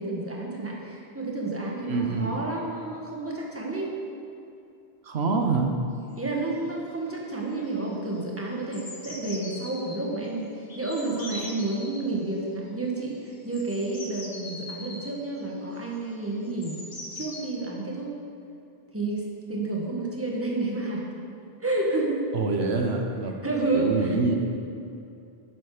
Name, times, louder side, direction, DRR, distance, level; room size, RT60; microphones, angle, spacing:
voice 1, 0.0-3.9 6.2-16.8 17.1-18.1 18.9-21.2 21.6-22.3 23.4-24.2, right 2 dB, 15° right, -2 dB, 1.7 m, -30 dB
voice 2, 1.9-2.4 5.0-5.7 22.3-23.4 23.7-24.4, right 4 dB, 80° right, 3 dB, 1.2 m, -25 dB
sound 1, 6.1-6.2 6.4-6.8 7.1-7.4 7.7-10.0 10.7-12.0 13.1-17.4, left 1 dB, 60° left, 1.7 m, -42 dB
11.5 x 10.0 x 5.0 m, 2.6 s
omnidirectional pair, 1.1 m